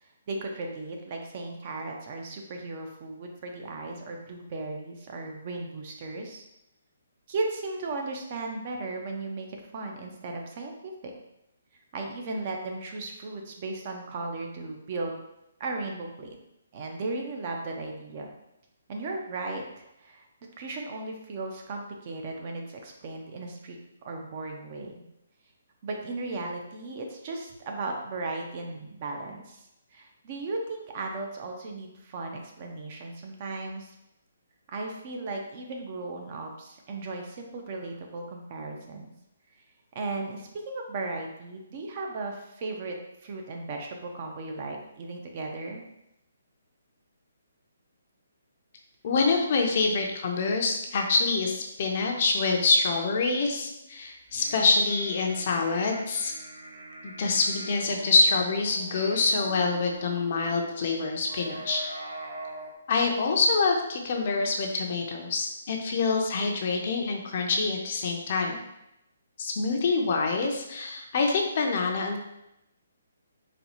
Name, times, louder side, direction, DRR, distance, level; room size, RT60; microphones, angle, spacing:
voice 1, 0.3-6.4 7.3-11.1 11.9-15.2 15.6-16.4 16.7-18.3 18.9-20.3 20.6-23.8 24.0-24.9 25.8-29.6 29.9-33.9 34.7-39.1 39.9-43.0 43.2-45.8, right 3 dB, 35° right, 2 dB, 0.5 m, -36 dB
voice 2, 49.0-56.3 57.0-61.8 62.9-68.6 69.4-72.2, left 3 dB, 45° left, 2 dB, 0.5 m, -26 dB
sound 1, 54.2-62.7, right 2 dB, 70° right, 1.2 m, -43 dB
4.1 x 2.3 x 2.9 m, 0.85 s
hypercardioid pair, 160°, 0 cm